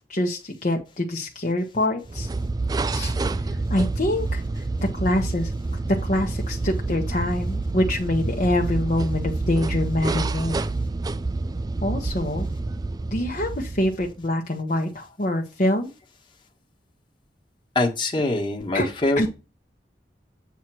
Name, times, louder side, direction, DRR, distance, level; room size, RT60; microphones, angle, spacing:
voice 1, 0.1-2.3 2.9-3.1 3.7-4.4 4.9-5.5 6.0-10.6 11.8-12.5 13.1-15.9 18.7-18.9 19.2-19.3, left 1 dB, 45° left, 0 dB, 1.1 m, -25 dB
sound 1, 2.1-14.2, right 3 dB, 20° right, 0.4 m, -28 dB
voice 2, 17.7-19.2, left 2 dB, 30° left, 1 dB, 1.5 m, -23 dB
8.1 x 3.0 x 6.2 m, 0.29 s
head